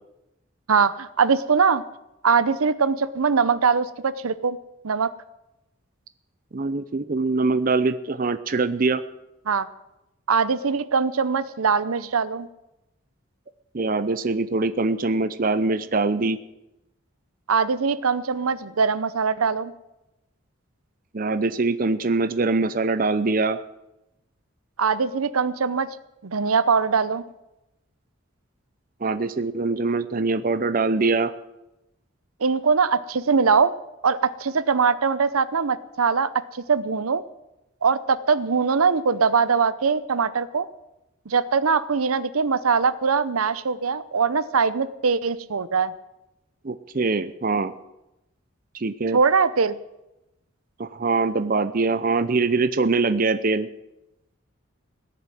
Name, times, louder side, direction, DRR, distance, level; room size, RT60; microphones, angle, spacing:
voice 1, 0.7-1.8 2.2-4.6 4.8-5.1 9.5-9.7 10.3-12.5 17.5-19.7 24.8-26.0 26.2-27.2 32.4-33.7 34.0-37.2 37.8-40.7 41.3-45.9 49.1-49.8, right 5 dB, 90° right, 15 dB, 0.7 m, -22 dB
voice 2, 6.5-9.0 13.7-16.4 21.1-23.6 29.0-31.3 46.6-47.7 48.7-49.2 50.8-53.7, right 3 dB, 40° right, 11 dB, 0.6 m, -23 dB
17.5 x 6.9 x 9.2 m, 0.92 s
head